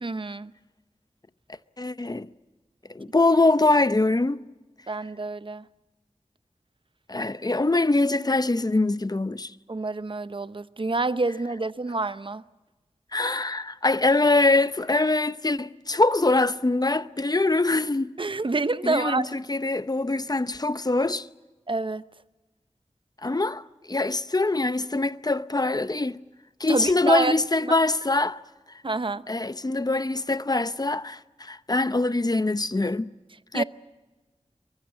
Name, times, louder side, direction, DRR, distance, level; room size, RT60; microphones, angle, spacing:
voice 1, 0.0-0.5 4.9-5.7 9.7-12.4 18.2-19.4 21.7-22.0 26.7-27.3 27.6-27.8 28.8-29.2 33.5-33.6, right 3 dB, 45° right, 0.8 m, -27 dB
voice 2, 1.8-2.3 2.9-4.4 7.1-9.5 13.1-18.1 18.8-21.3 23.2-23.6 23.9-26.2 26.6-28.4 29.3-33.1 33.5-33.6, left 2 dB, 35° left, 0.7 m, -23 dB
23.5 x 21.0 x 8.3 m
wide cardioid pair, 55°, 12 cm